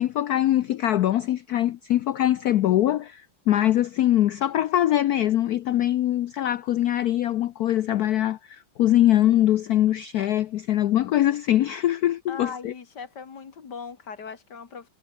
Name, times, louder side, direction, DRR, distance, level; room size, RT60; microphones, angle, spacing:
voice 1, 0.0-12.7, left 13 dB, 85° left, 0.8 m, -22 dB
voice 2, 12.3-14.9, left 5 dB, 50° left, 2.5 m, -39 dB
omnidirectional pair, 2.4 m